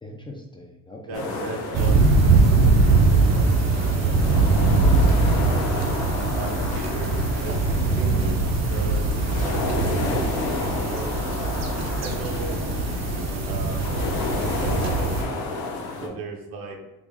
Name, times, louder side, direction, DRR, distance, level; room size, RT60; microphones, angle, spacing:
voice 1, 0.0-1.4 8.0-8.5 12.0-12.3 16.0-16.2, left 2 dB, 15° left, 0 dB, 0.3 m, -37 dB
sound 1, 1.1-16.1, left 3 dB, 80° left, 0.8 m, -31 dB
voice 2, 1.1-3.5 3.8-5.9 6.3-10.2 10.6-11.3 12.0-12.9 13.4-14.1 14.6-15.4 16.0-16.8, right 3 dB, 70° right, 2 dB, 0.8 m, -38 dB
sound 2, 1.7-15.2, right 3 dB, 45° right, 0.6 m, -21 dB
3.6 x 2.0 x 3.4 m, 0.98 s
cardioid pair, 100°, 37 cm